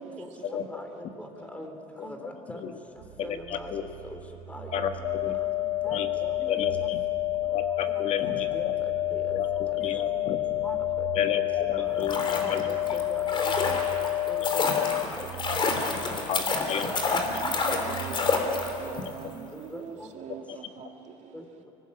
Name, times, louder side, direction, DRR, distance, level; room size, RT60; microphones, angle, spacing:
voice 1, 0.0-1.7 17.2-21.3, right 7 dB, 60° right, 3 dB, 2.6 m, -44 dB
voice 2, 0.7-1.7 2.0-2.6 3.2-3.7 4.1-4.2 4.5-4.8 5.8-6.8 8.2-9.2 10.2-10.3 10.6-11.1 11.8-13.8 14.3-14.7 15.0-15.3 15.6-15.7 16.1-16.2 18.1-18.4 18.9-19.0 19.5-20.1 21.3-21.4, left 1 dB, 10° left, 4 dB, 3.6 m, -41 dB
sound 1, 3.0-19.8, right 12 dB, 85° right, 1.8 m, -45 dB
voice 3, 3.2-3.9 4.7-5.4 5.9-6.1 6.5-7.0 7.5-8.7 9.3-10.6 11.1-12.6 13.6-13.8 14.4-14.9 15.5-15.6 15.9-17.4 18.2-18.4 18.9-19.1 20.5-20.6, left 8 dB, 55° left, 6 dB, 1.8 m, -33 dB
sound 2, 5.0-15.0, left 17 dB, 80° left, 0.7 m, -29 dB
sound 3, 11.9-19.0 19.3-19.4, left 3 dB, 40° left, 3.5 m, -29 dB
24.5 x 18.5 x 8.6 m, 3.0 s
supercardioid pair, 100°, 13 cm